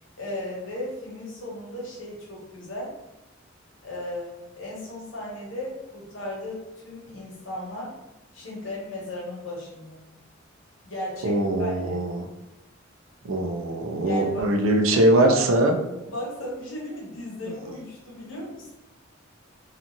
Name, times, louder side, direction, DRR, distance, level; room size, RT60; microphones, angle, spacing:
voice 1, 0.2-2.9 3.8-7.9 8.3-10.0 10.9-12.1 14.0-14.6 14.8-15.6 16.0-18.7, left 1 dB, 80° left, -3 dB, 1.0 m, -36 dB
voice 2, 11.2-12.2 13.2-15.8, right 1 dB, 85° right, 4 dB, 0.4 m, -21 dB
2.9 x 2.4 x 2.6 m, 0.98 s
head